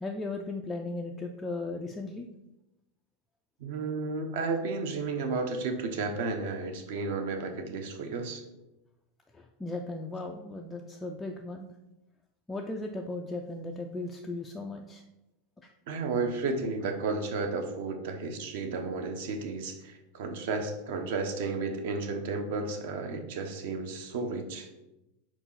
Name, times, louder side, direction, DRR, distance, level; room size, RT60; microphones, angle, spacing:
voice 1, 0.0-2.3 9.3-11.7 12.5-15.0 15.6-15.7, left 2 dB, 5° left, 1 dB, 0.3 m, -37 dB
voice 2, 3.6-8.4 15.9-24.7, right 3 dB, 55° right, 5 dB, 1.1 m, -33 dB
5.0 x 4.6 x 5.6 m, 0.95 s
supercardioid pair, 180°, 0 cm